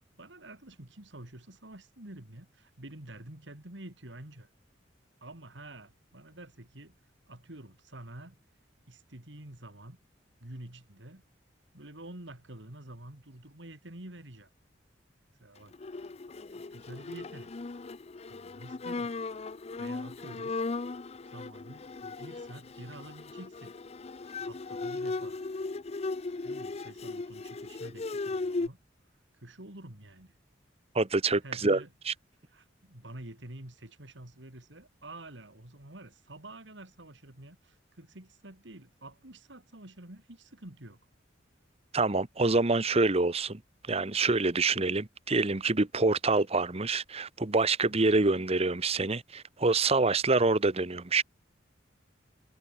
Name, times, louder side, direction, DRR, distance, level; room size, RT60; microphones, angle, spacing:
voice 1, 0.2-4.5 5.2-7.0 7.3-8.4 8.9-10.0 10.4-11.2 11.7-14.5 15.4-15.7 16.5-17.5 18.3-19.1 19.8-20.6 21.2-23.7 24.4-25.4 26.4-28.8 29.4-30.4 31.4-31.9 32.5-41.0, right 1 dB, 75° right, 3.4 m, -48 dB
Bowed string instrument, 15.7-28.7, left 3 dB, 35° left, 0.5 m, -37 dB
voice 2, 30.9-32.1 41.9-43.6 43.9-51.2, right 3 dB, 35° right, 1.2 m, -26 dB
head